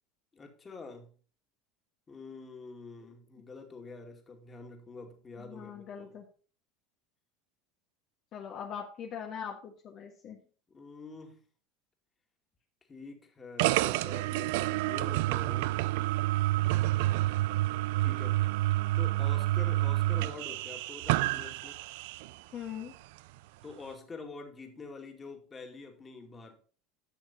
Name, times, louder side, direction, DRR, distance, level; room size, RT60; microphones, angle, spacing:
voice 1, 0.3-1.1 2.1-6.1 10.7-11.4 12.9-15.8 18.0-18.5 19.0-21.8 23.6-26.6, left 4 dB, 25° left, 3 dB, 2.2 m, -46 dB
voice 2, 5.3-6.3 8.3-10.4 22.5-22.9, left 8 dB, 50° left, 1 dB, 1.4 m, -41 dB
sound 1, 13.6-22.3, right 17 dB, 75° right, 0.3 m, -29 dB
11.0 x 6.5 x 4.2 m, 0.41 s
hypercardioid pair, 95°, 0 cm